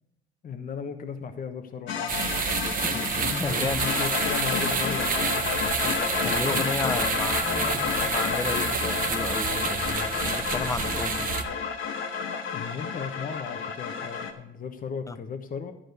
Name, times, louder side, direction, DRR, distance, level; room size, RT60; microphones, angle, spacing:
voice 1, 0.4-2.2 2.8-3.2 3.7-6.1 12.5-15.7, left 6 dB, 45° left, 1.1 m, -37 dB
sound 1, 1.9-14.3, left 6 dB, 70° left, 1.4 m, -30 dB
sound 2, 2.1-11.4, right 6 dB, 45° right, 1.1 m, -29 dB
voice 2, 2.9-3.9 6.2-11.3 15.1-15.2, left 3 dB, 15° left, 0.6 m, -33 dB
11.5 x 5.0 x 7.9 m
cardioid pair, 110°, 20 cm